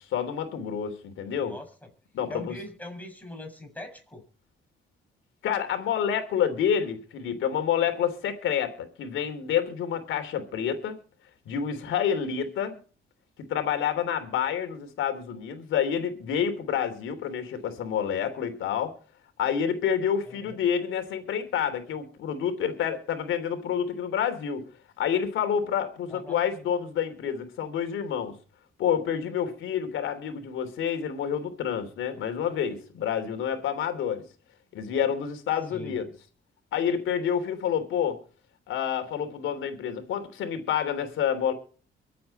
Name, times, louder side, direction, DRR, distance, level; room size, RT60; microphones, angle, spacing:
voice 1, 0.1-1.6 2.1-2.5 5.4-11.0 11.4-12.8 13.5-18.9 19.4-24.7 25.0-28.3 28.8-34.2 34.7-36.1 36.7-38.2 38.7-41.5, left 8 dB, 80° left, 3.3 m, -28 dB
voice 2, 1.4-1.9 2.3-4.2 20.3-20.6 26.1-26.4 35.7-36.0, left 1 dB, 10° left, 7.1 m, -41 dB
24.0 x 8.5 x 4.3 m
cardioid pair, 90°, 20 cm